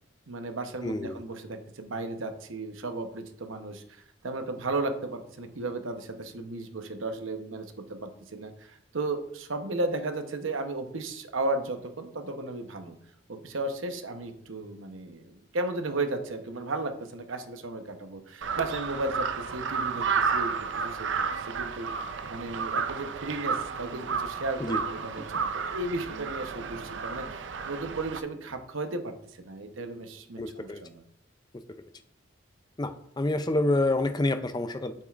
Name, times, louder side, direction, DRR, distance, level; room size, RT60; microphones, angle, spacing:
voice 1, 0.3-13.0 13.3-31.0, right 2 dB, 85° right, 6 dB, 0.9 m, -35 dB
voice 2, 0.8-1.2 24.6-24.8 30.4-30.8 32.8-34.9, left 2 dB, 20° left, 9 dB, 0.4 m, -28 dB
Crow, 18.4-28.2, right 5 dB, 65° right, 0.5 m, -32 dB
sound 1, 24.9-25.5 26.6-26.8 28.3-28.6, equal, 45° right, 1.2 m, -51 dB
9.1 x 7.6 x 2.5 m, 0.71 s
head